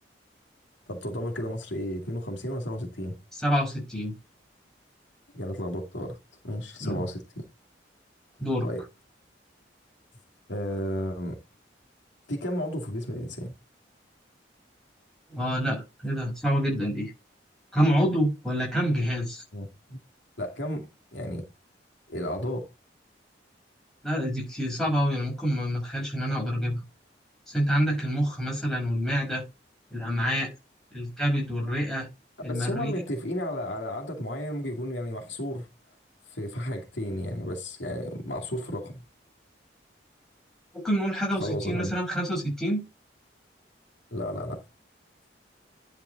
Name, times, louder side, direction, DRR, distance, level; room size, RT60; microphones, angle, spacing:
voice 1, 0.9-3.2 5.3-6.2 6.4-7.5 8.6-8.8 10.5-11.4 12.3-13.5 19.5-20.0 20.4-20.9 21.1-21.4 22.1-22.7 32.4-35.7 36.3-39.0 41.4-41.9 44.1-44.6, equal, 80° left, 2.4 m, -33 dB
voice 2, 3.4-4.1 6.8-7.0 8.4-8.7 15.3-17.1 17.7-19.4 24.0-26.8 27.5-29.4 29.9-30.5 30.9-32.1 32.4-32.9 40.8-42.8, equal, 5° left, 5.9 m, -27 dB
11.0 x 5.2 x 4.0 m
head